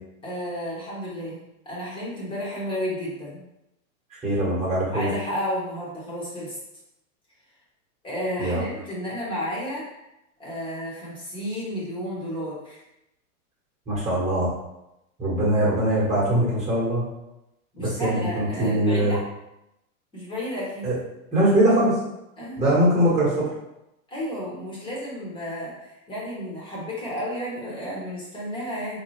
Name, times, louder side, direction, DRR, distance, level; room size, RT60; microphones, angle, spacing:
voice 1, 0.2-3.4 4.9-6.6 8.0-9.8 10.4-12.8 17.7-19.2 20.1-20.9 22.4-22.6 24.1-29.0, equal, 10° left, -6 dB, 1.1 m, -32 dB
voice 2, 4.1-5.1 8.4-8.6 13.9-14.5 15.2-17.0 17.8-19.1 20.8-20.9 21.3-22.0 22.6-23.5, right 1 dB, 15° right, -6 dB, 1.3 m, -22 dB
3.7 x 2.8 x 3.2 m, 0.88 s
supercardioid pair, 150°, 43 cm